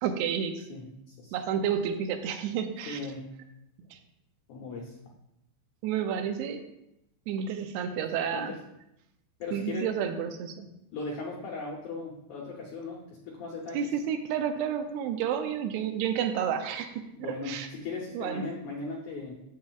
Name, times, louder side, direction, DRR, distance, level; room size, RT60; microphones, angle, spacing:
voice 1, 0.0-0.7 1.3-3.0 3.9-4.0 5.8-6.6 7.3-8.5 9.5-10.7 13.7-17.7 18.1-18.5, right 8 dB, 85° right, 7 dB, 2.5 m, -30 dB
voice 2, 0.7-1.3 2.9-3.3 4.5-5.0 8.3-8.6 9.4-9.9 10.9-13.9 17.2-19.4, left 3 dB, 90° left, -1 dB, 1.6 m, -38 dB
9.4 x 7.3 x 2.4 m, 0.86 s
omnidirectional pair, 4.7 m